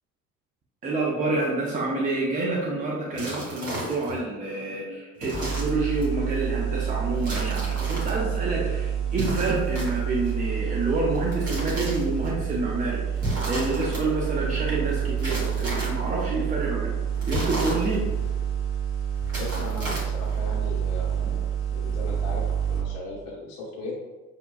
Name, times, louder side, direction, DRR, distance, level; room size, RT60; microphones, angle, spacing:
voice 1, 0.8-16.9 17.2-18.0, right 2 dB, 20° right, -3 dB, 0.7 m, -28 dB
sound 1, 3.1-4.2 5.2-6.1 7.2-8.2 9.1-10.3 11.2-12.3 13.2-14.0 15.2-16.1 17.2-18.3 19.2-20.4, equal, 75° right, 1.4 m, -34 dB
sound 2, 5.3-22.8, right 8 dB, ahead, 1.2 m, -28 dB
voice 2, 19.4-23.9, left 2 dB, 50° left, -5 dB, 1.0 m, -38 dB
6.4 x 2.2 x 2.4 m, 1.2 s
figure-of-eight pair, 60°, 43 cm